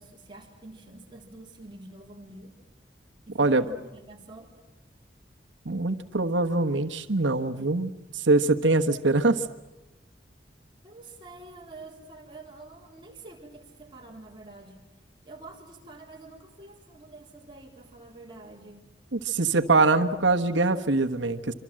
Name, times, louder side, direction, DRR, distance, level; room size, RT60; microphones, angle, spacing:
voice 1, 0.0-2.6 3.3-4.5 10.8-14.8 15.2-18.8, right 2 dB, 25° right, 0 dB, 3.7 m, -47 dB
voice 2, 5.6-9.4 19.1-21.5, right 3 dB, 85° right, 7 dB, 1.3 m, -23 dB
26.0 x 25.5 x 7.6 m, 1.1 s
head